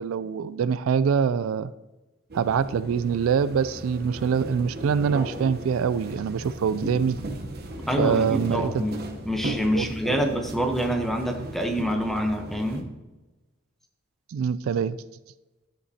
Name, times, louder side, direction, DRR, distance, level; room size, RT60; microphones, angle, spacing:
voice 1, 0.0-1.7 2.3-7.2 8.0-8.8 9.8-10.3 14.3-15.0, right 7 dB, 75° right, 15 dB, 0.3 m, -25 dB
sound 1, 2.3-12.8, right 1 dB, 50° right, 1.0 m, -36 dB
voice 2, 7.9-12.9, equal, ahead, 4 dB, 0.9 m, -26 dB
11.5 x 7.7 x 2.8 m, 1.1 s
head